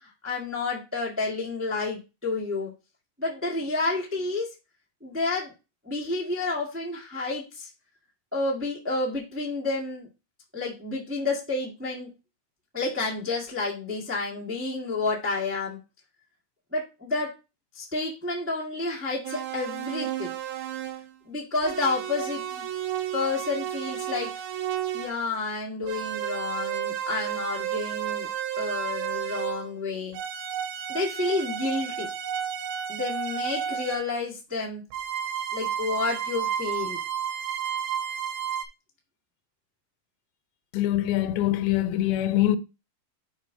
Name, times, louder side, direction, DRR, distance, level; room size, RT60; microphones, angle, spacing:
voice 1, 0.2-2.7 3.2-4.5 5.0-5.5 5.8-7.7 8.3-10.1 10.5-12.1 12.7-15.8 16.7-17.3 17.7-20.3 21.3-22.6 23.1-24.3 24.9-28.3 28.6-30.2 30.9-32.1 32.9-34.8 35.5-37.0, left 3 dB, 10° right, 0.8 m, -30 dB
sound 1, 19.2-21.1 21.6-25.2 25.8-29.8 30.1-34.1 34.9-38.6, right 9 dB, 85° right, 2.7 m, -32 dB
voice 2, 40.7-42.6, left 13 dB, 85° left, 2.5 m, -24 dB
10.0 x 5.2 x 2.8 m
omnidirectional pair, 4.2 m